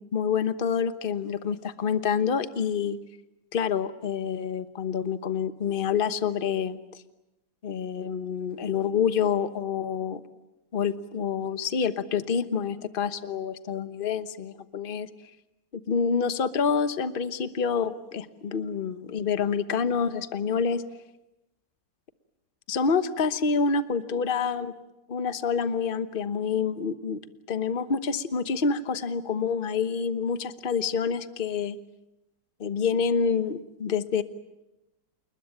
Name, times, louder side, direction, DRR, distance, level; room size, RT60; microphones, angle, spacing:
voice 1, 0.0-3.0 3.5-6.8 7.6-10.2 10.7-15.1 15.7-20.8 22.7-24.7 25.1-27.2 27.5-31.8 32.6-34.2, left 6 dB, 35° left, 12 dB, 1.1 m, -27 dB
29.0 x 21.0 x 9.0 m, 0.95 s
omnidirectional pair, 2.0 m